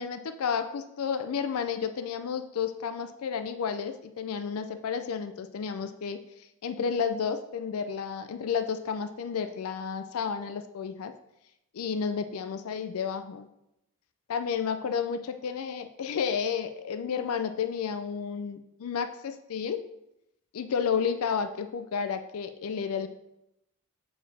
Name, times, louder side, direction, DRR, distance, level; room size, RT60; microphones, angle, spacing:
voice 1, 0.0-6.2 6.6-11.1 11.7-13.5 14.3-19.8 20.5-23.1, left 6 dB, 80° left, 10 dB, 0.4 m, -31 dB
7.1 x 4.6 x 4.1 m, 0.84 s
head